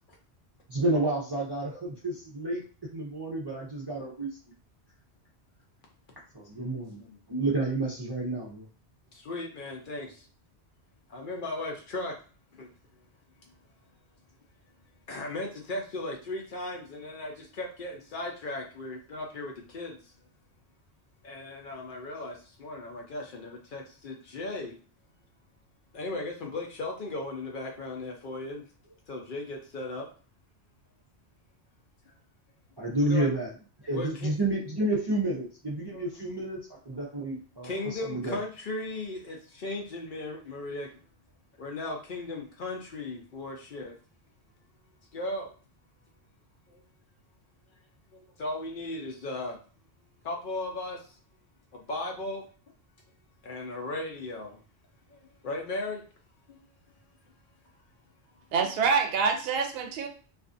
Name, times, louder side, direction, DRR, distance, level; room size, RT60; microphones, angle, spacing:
voice 1, 0.7-2.6 2.9-4.3 6.3-7.0 7.3-8.7 32.8-33.5 33.8-36.6 36.8-38.4, right 2 dB, 30° right, -5 dB, 0.4 m, -30 dB
voice 2, 9.1-10.3 11.1-12.2 12.5-12.7 15.1-20.1 21.2-24.8 25.9-28.6 29.1-30.1 33.1-33.3 33.9-34.3 35.9-36.1 37.6-40.9 41.6-44.0 45.1-45.5 46.7-46.8 48.1-49.6 50.2-51.2 51.7-52.4 53.4-54.6 55.1-56.0 56.5-56.6, left 2 dB, 55° left, 1 dB, 0.7 m, -36 dB
voice 3, 58.5-60.1, right 5 dB, 65° right, 4 dB, 0.7 m, -26 dB
2.5 x 2.4 x 2.5 m, 0.39 s
omnidirectional pair, 1.1 m